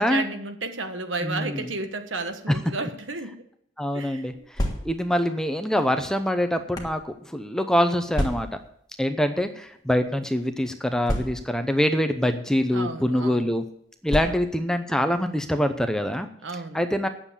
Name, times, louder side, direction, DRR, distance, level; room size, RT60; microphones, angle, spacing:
voice 1, 0.0-3.4 3.9-4.5 12.7-13.5 14.2-14.3 16.4-16.8, right 3 dB, 70° right, 7 dB, 1.3 m, -32 dB
voice 2, 1.2-1.7 2.5-2.6 3.8-8.6 9.0-13.6 14.0-16.3 16.7-17.1, equal, 5° left, 7 dB, 0.6 m, -24 dB
sound 1, 4.3-5.2 6.0-7.0 8.1-8.7 9.6-9.8 10.0-10.1 11.0-11.7 12.6-12.8 14.1-14.7, equal, 20° left, 1.5 m, -30 dB
9.6 x 7.3 x 8.3 m, 0.69 s
head